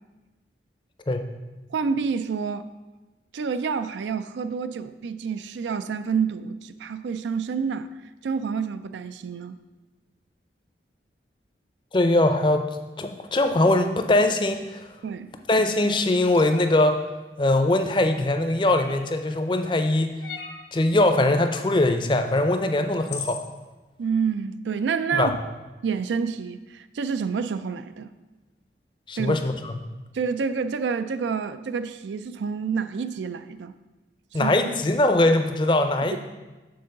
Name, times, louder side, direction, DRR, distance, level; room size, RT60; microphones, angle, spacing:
voice 1, 1.7-2.7 3.3-7.9 8.2-9.6 15.0-15.3 24.0-25.3 25.8-28.1 29.2-29.4 30.1-33.8 34.4-34.5 36.1-36.2, right 5 dB, 90° right, 0.4 m, -28 dB
voice 2, 11.9-12.7 13.0-14.9 15.5-17.0 17.4-20.2 20.7-23.4 25.1-25.3 29.1-29.8 34.3-36.2, left 2 dB, 25° left, 0.5 m, -21 dB
sound 1, 16.3-16.7 18.7-19.2 20.2-20.7 22.4-22.5 23.1-23.5, left 5 dB, 80° left, 0.9 m, -37 dB
6.8 x 3.8 x 6.5 m
head